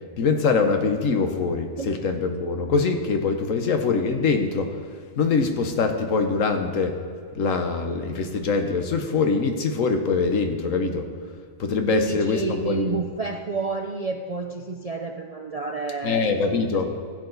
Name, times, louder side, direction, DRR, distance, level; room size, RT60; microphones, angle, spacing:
voice 1, 0.2-4.7 5.2-7.0 7.4-11.1 11.6-13.0 16.0-16.9, left 4 dB, 75° left, 5 dB, 1.4 m, -23 dB
voice 2, 11.9-16.8, right 3 dB, 50° right, 4 dB, 0.4 m, -30 dB
15.5 x 7.7 x 4.0 m, 2.1 s
omnidirectional pair, 1.4 m